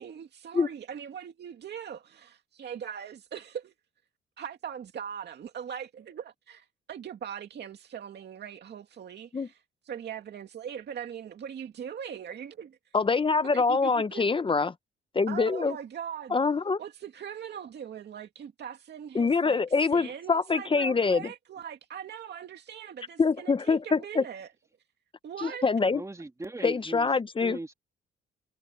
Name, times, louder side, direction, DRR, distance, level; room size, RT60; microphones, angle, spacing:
voice 1, 0.0-3.7 4.4-12.8 13.5-14.3 15.3-16.4 16.8-19.6 19.9-24.5 25.2-25.7, right 8 dB, 60° right, 2.4 m, -40 dB
voice 2, 12.9-14.7 15.1-15.8 16.3-16.8 19.1-21.2 23.2-24.2 25.4-26.0 26.6-27.6, left 4 dB, 25° left, 0.8 m, -25 dB
voice 3, 25.9-27.1 27.4-27.7, right 2 dB, 15° right, 2.5 m, -39 dB
cardioid pair, 90°, 20 cm